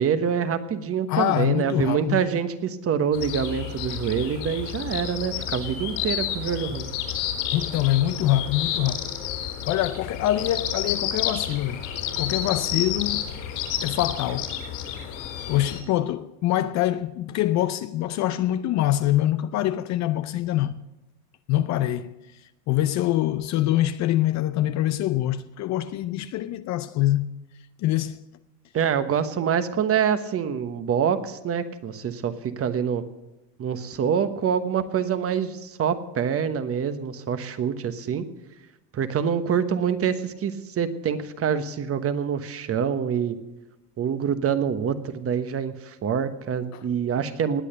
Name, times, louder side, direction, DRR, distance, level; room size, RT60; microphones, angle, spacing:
voice 1, 0.0-6.9 28.7-33.0 33.6-38.2 38.9-43.4 44.0-47.6, right 7 dB, 30° right, 1.2 m, -26 dB
voice 2, 1.1-2.2 7.5-9.1 9.7-11.8 12.2-13.3 13.8-14.5 15.5-20.7 21.5-22.1 22.7-27.3 27.8-28.2 46.7-46.8, left 13 dB, 35° left, 0.6 m, -24 dB
sound 1, 3.1-15.8, left 10 dB, 70° left, 3.8 m, -30 dB
19.5 x 8.4 x 6.7 m
supercardioid pair, 110°, 47 cm